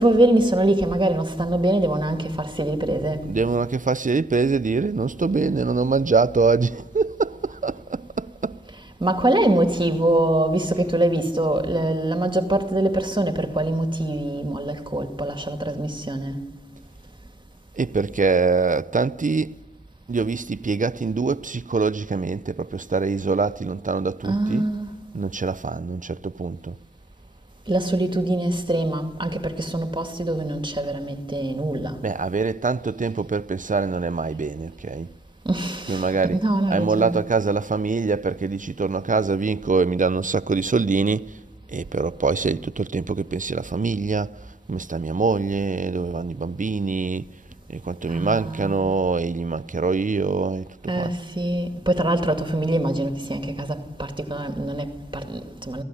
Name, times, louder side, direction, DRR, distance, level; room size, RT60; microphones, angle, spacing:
voice 1, 0.0-3.3 9.0-16.4 24.2-24.9 27.7-32.0 35.4-37.1 48.1-48.8 50.9-55.8, right 1 dB, 25° right, 2.2 m, -23 dB
voice 2, 3.2-8.6 17.7-19.5 20.1-24.7 25.1-26.8 32.0-35.1 35.9-41.3 41.7-44.4 44.7-47.3 47.7-51.1, right 4 dB, 50° right, 0.6 m, -24 dB
27.5 x 17.0 x 9.9 m
wide cardioid pair, 45°, 17 cm